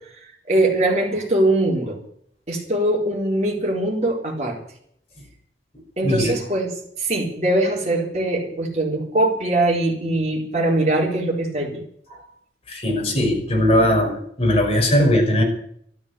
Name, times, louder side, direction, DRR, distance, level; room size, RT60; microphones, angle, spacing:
voice 1, 0.5-2.0 2.5-4.6 6.0-11.8 12.1-12.2, right 1 dB, 40° right, 0 dB, 4.2 m, -22 dB
voice 2, 6.0-6.3 12.7-15.4, left 1 dB, 30° left, 1 dB, 5.8 m, -19 dB
13.5 x 12.5 x 8.4 m, 0.66 s
head